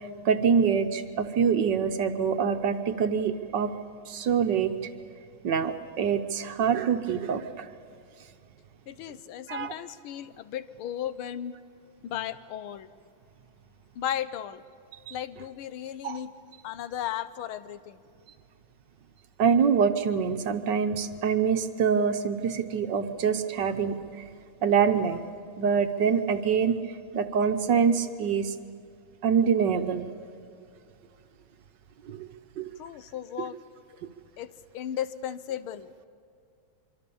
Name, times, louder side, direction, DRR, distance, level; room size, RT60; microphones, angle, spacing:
voice 1, 0.2-3.7 4.1-4.7 5.4-7.7 9.5-9.7 15.1-15.2 16.0-16.2 19.4-24.0 24.6-25.2 25.6-26.8 27.1-28.5 29.2-30.1 32.1-32.3 32.6-32.7, right 6 dB, 65° right, 8 dB, 1.4 m, -25 dB
voice 2, 8.9-11.6 12.0-12.9 13.9-14.6 15.1-16.3 16.6-18.0 32.8-33.6 34.4-36.1, left 10 dB, 80° left, 13 dB, 1.7 m, -35 dB
25.0 x 24.5 x 7.0 m, 2.4 s
omnidirectional pair, 2.3 m